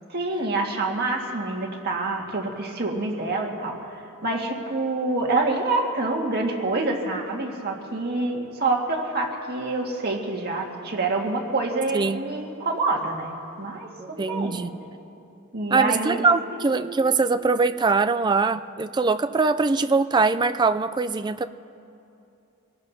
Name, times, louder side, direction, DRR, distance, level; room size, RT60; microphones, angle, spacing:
voice 1, 0.1-14.7 15.5-16.3 16.5-17.0, right 2 dB, 45° right, 0 dB, 1.9 m, -27 dB
voice 2, 11.9-12.3 14.0-14.7 15.7-21.5, right 4 dB, 20° right, 10 dB, 0.3 m, -22 dB
26.0 x 18.0 x 2.8 m, 2.7 s
head